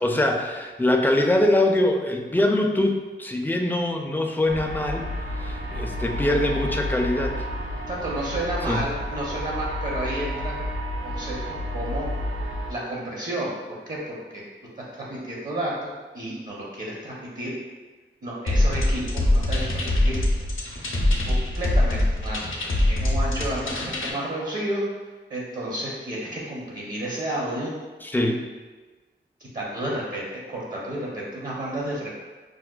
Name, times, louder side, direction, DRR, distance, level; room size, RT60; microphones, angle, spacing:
voice 1, 0.0-5.1 5.3-7.4 8.7-8.8 28.0-28.4, left 1 dB, 10° left, 2 dB, 0.3 m, -23 dB
sound 1, 4.5-12.7, left 1 dB, 85° right, 0.5 m, -31 dB
voice 2, 7.9-10.6 11.0-11.4 11.7-12.1 12.7-14.4 14.8-17.5 18.2-20.1 21.2-24.8 25.3-27.7 29.4-32.1, right 1 dB, 45° right, -5 dB, 0.6 m, -31 dB
sound 2, 18.5-24.1, left 1 dB, 85° left, 0.5 m, -23 dB
4.7 x 2.1 x 2.2 m, 1.3 s
wide cardioid pair, 70°, 20 cm